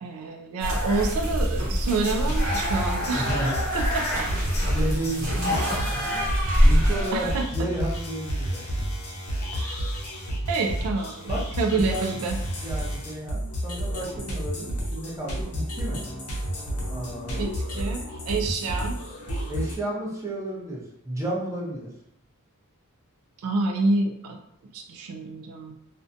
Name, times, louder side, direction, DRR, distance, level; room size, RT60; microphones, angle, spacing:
voice 1, 0.0-4.3 6.5-6.7 7.1-7.7 9.5-9.9 10.5-12.4 17.4-19.0 23.4-24.4 24.7-25.7, right 3 dB, 70° right, 4 dB, 0.3 m, -28 dB
sound 1, 0.6-7.4, equal, 40° right, 0.9 m, -25 dB
sound 2, 2.0-19.7, equal, 85° left, 0.7 m, -31 dB
voice 2, 3.1-3.7 4.7-6.2 6.6-8.6 11.3-12.1 12.6-16.0 16.8-17.5 19.5-21.9, right 1 dB, 15° right, -5 dB, 0.5 m, -32 dB
2.5 x 2.1 x 2.6 m, 0.75 s
head